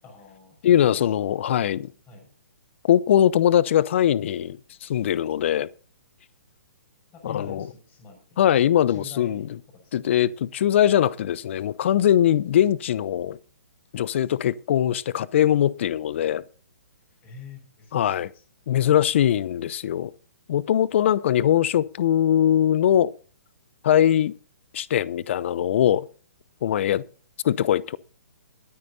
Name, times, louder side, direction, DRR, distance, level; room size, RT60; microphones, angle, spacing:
voice 1, 0.0-1.0 2.1-2.3 7.1-8.5 8.9-9.4 9.7-9.9 17.2-18.4, left 4 dB, 20° left, 6.1 m, -44 dB
voice 2, 0.6-1.9 2.8-5.7 7.2-7.6 8.4-9.5 9.9-13.4 13.9-16.4 17.9-18.3 18.7-20.1 20.5-23.1 23.8-24.3 24.7-26.1 26.6-27.0 27.4-28.0, left 10 dB, 50° left, 0.7 m, -21 dB
21.5 x 9.4 x 2.8 m
figure-of-eight pair, 130°, 9 cm